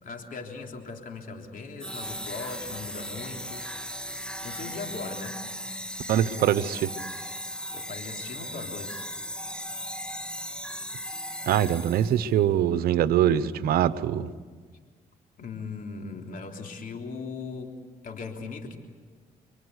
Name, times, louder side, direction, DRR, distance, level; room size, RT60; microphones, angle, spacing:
voice 1, 0.0-3.7 4.4-5.4 7.7-9.1 15.4-17.7 18.0-18.8, left 4 dB, 65° left, 3 dB, 3.5 m, -39 dB
sound 1, 1.8-12.3, equal, 5° left, 2.5 m, -37 dB
voice 2, 6.1-6.9 11.5-14.3, right 10 dB, 85° right, 14 dB, 1.0 m, -23 dB
28.5 x 23.5 x 8.3 m, 1.5 s
cardioid pair, 70°, 15 cm